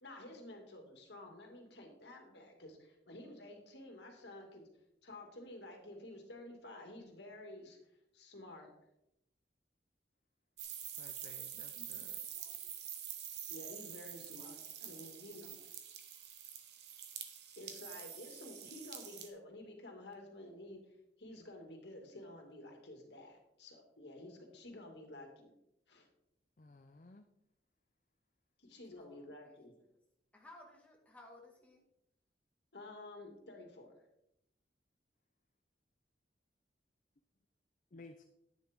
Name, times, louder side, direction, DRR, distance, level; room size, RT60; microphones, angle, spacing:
voice 1, 0.0-4.7 5.0-7.8 8.1-8.7 11.2-11.9 13.5-15.7 17.6-20.9 21.2-25.5 25.9-26.1 28.6-29.7 32.7-33.9, left 1 dB, 75° left, 2 dB, 2.4 m, -51 dB
sound 1, 10.6-19.3, right 9 dB, 70° right, 1.4 m, -47 dB
voice 2, 11.0-12.2 26.6-27.3 37.9-38.2, left 2 dB, 45° left, 7 dB, 0.6 m, -56 dB
voice 3, 11.9-12.7 29.0-29.7 30.3-31.8, left 1 dB, 10° left, -1 dB, 1.9 m, -59 dB
11.0 x 9.5 x 3.6 m, 0.82 s
head